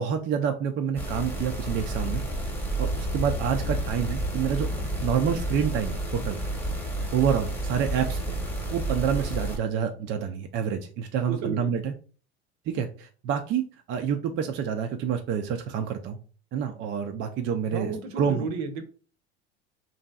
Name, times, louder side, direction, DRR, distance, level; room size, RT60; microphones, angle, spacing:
voice 1, 0.0-2.2 2.8-4.7 5.0-6.4 7.1-8.4 8.7-11.9 12.7-13.6 13.9-16.2 16.5-18.5, right 7 dB, 40° right, 0.4 m, -28 dB
sound 1, 1.0-9.6, right 1 dB, 5° left, 1.0 m, -30 dB
voice 2, 11.3-11.8 17.7-18.8, right 4 dB, 60° right, 0.7 m, -33 dB
3.1 x 2.6 x 2.3 m
hypercardioid pair, 90°, 32 cm